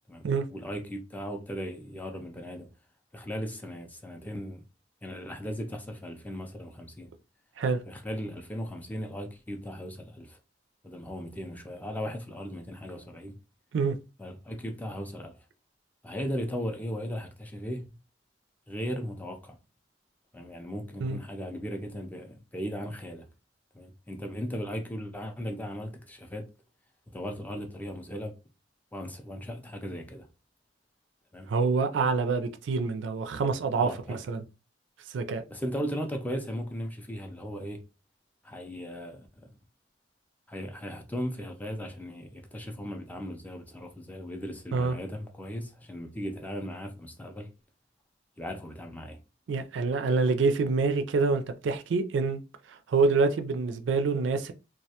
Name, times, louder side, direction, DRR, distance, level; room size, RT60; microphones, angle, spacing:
voice 1, 0.1-2.7 3.1-4.6 5.0-7.1 7.9-10.4 10.8-13.4 14.2-15.3 16.0-17.9 18.7-19.6 20.3-23.3 23.7-26.5 27.1-28.3 28.9-30.3 31.3-31.5 33.8-34.2 35.5-37.8 38.4-39.5 40.5-47.5 48.4-49.2, equal, 10° left, 0.4 m, -37 dB
voice 2, 31.5-34.4 35.1-35.4 44.7-45.0 49.5-52.4 52.9-54.5, right 4 dB, 75° right, 0.4 m, -26 dB
2.3 x 2.1 x 2.8 m
head